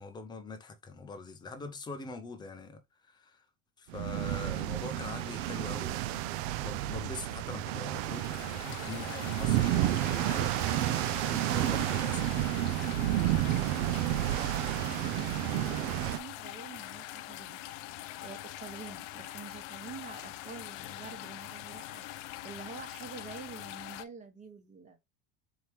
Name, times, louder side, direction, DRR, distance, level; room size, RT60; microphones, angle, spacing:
voice 1, 0.0-3.5 3.8-10.5 11.3-12.5, left 3 dB, 10° left, 0.5 m, -43 dB
sound 1, 3.9-16.2, right 14 dB, 60° right, 0.5 m, -31 dB
sound 2, 7.9-24.1, left 15 dB, 75° left, 0.6 m, -43 dB
voice 2, 14.0-17.6 18.2-25.0, right 5 dB, 20° right, 1.0 m, -47 dB
4.4 x 3.0 x 3.3 m
cardioid pair, 170°, 37 cm